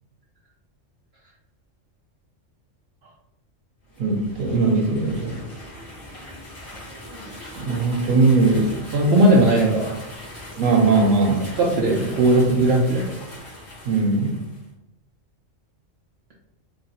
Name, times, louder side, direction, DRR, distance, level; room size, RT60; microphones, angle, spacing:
sound 1, 3.8-14.7, left 1 dB, 55° left, 1.8 m, -40 dB
voice 1, 4.0-5.4 7.6-8.8 10.6-11.4 13.8-14.4, right 3 dB, 90° right, 3 dB, 1.1 m, -19 dB
voice 2, 8.9-10.0 11.6-13.1, right 1 dB, 60° right, -3 dB, 0.8 m, -18 dB
4.2 x 2.9 x 2.8 m, 0.85 s
omnidirectional pair, 1.4 m